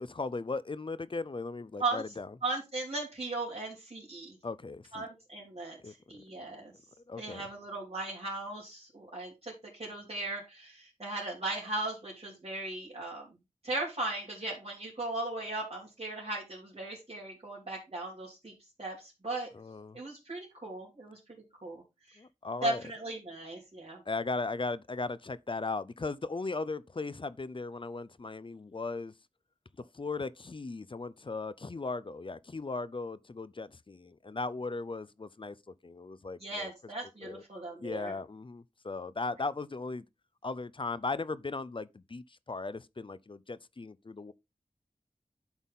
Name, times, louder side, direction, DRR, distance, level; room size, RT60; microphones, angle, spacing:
voice 1, 0.0-2.3 4.4-5.1 5.8-5.9 7.1-7.5 19.5-20.0 22.2-22.8 24.1-29.1 29.8-36.7 37.2-37.4 37.8-40.0 40.4-44.3, left 3 dB, 40° left, 0.5 m, -37 dB
voice 2, 2.4-4.4 4.9-6.7 7.2-13.3 13.6-18.5 18.8-19.5 19.9-21.2 21.6-22.2 22.6-24.0 36.4-38.1, right 2 dB, 45° right, 3.0 m, -37 dB
11.0 x 4.1 x 3.6 m
wide cardioid pair, 45°, 14 cm